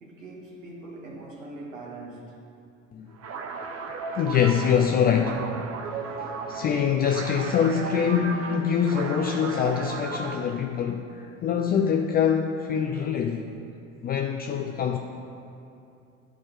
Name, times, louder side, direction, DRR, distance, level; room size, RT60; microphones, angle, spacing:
voice 1, 0.0-2.3 5.3-5.4, right 2 dB, 80° right, -3 dB, 1.7 m, -41 dB
sound 1, 3.2-10.6, right 4 dB, 40° right, 0.8 m, -36 dB
voice 2, 4.2-5.4 5.9-13.5 14.0-15.0, left 7 dB, 25° left, 3 dB, 0.4 m, -24 dB
11.5 x 4.5 x 3.1 m, 2.7 s
hypercardioid pair, 75°, 39 cm